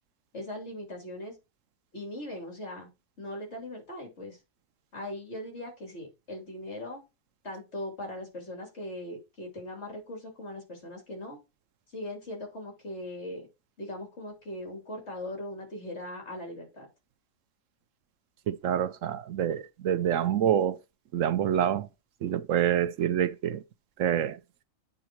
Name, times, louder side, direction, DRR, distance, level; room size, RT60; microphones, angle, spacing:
voice 1, 0.3-1.3 1.9-2.9 3.2-4.4 4.9-7.0 7.4-11.4 11.9-13.5 13.8-16.9, left 1 dB, 55° left, 3.1 m, -39 dB
voice 2, 18.5-20.8 21.1-21.9 22.2-23.6 24.0-24.4, right 10 dB, 70° right, 0.9 m, -27 dB
8.7 x 3.9 x 4.5 m
omnidirectional pair, 1.4 m